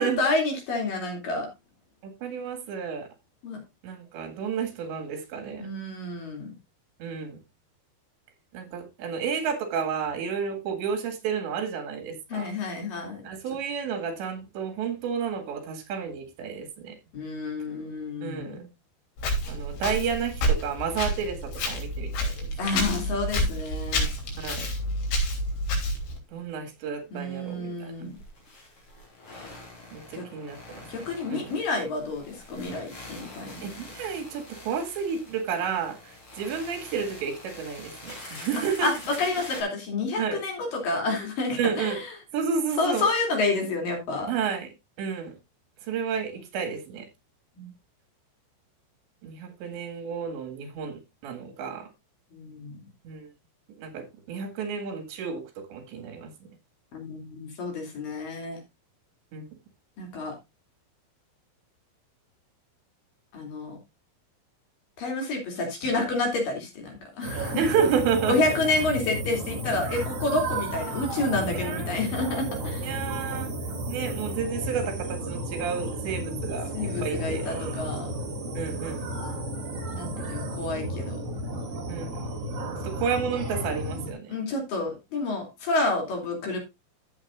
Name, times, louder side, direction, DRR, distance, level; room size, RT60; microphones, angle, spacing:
voice 1, 0.0-1.5 3.4-3.6 5.6-6.5 12.3-13.2 17.1-18.7 22.6-24.1 27.1-28.2 30.1-30.2 30.9-33.8 38.8-38.9 39.2-42.1 42.8-44.3 47.6-47.7 52.3-52.9 56.9-58.6 60.0-60.3 63.3-63.8 65.0-67.6 68.3-73.0 76.7-78.1 79.9-81.2 84.3-86.6, left 3 dB, 55° left, 4.1 m, -29 dB
voice 2, 2.0-3.1 3.8-5.7 7.0-7.4 8.5-12.5 13.2-17.0 18.2-18.6 19.5-22.5 24.4-24.7 26.3-27.9 29.9-30.9 31.3-31.5 33.6-38.9 40.2-40.4 41.6-42.0 42.3-43.1 44.3-44.7 45.0-45.3 45.8-47.1 49.2-51.9 53.1-53.3 53.8-56.3 59.3-59.5 67.6-68.4 71.5-72.0 72.8-73.5 73.9-77.5 78.5-79.1 81.9-82.2 82.8-84.3, right 6 dB, 80° right, 4.2 m, -31 dB
Walk footsteps, 19.2-26.2, equal, 85° left, 5.5 m, -29 dB
sound 1, 25.9-26.0 26.3-26.4 28.0-39.6, left 2 dB, 30° left, 4.2 m, -45 dB
sound 2, 67.2-84.1, right 1 dB, 40° right, 3.1 m, -33 dB
14.5 x 7.9 x 2.5 m
omnidirectional pair, 5.1 m